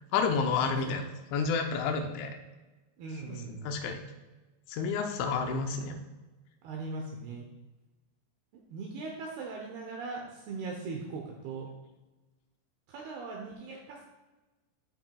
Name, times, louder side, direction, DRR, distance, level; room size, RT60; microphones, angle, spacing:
voice 1, 0.1-1.0 1.3-2.3 3.3-3.4 3.6-4.0 4.7-6.0, left 5 dB, 80° left, 4 dB, 3.0 m, -30 dB
voice 2, 0.6-1.0 3.0-3.7 6.6-7.5 8.7-11.7 12.9-14.0, right 4 dB, 90° right, 0 dB, 2.2 m, -39 dB
13.0 x 5.8 x 2.3 m, 1.2 s
omnidirectional pair, 5.6 m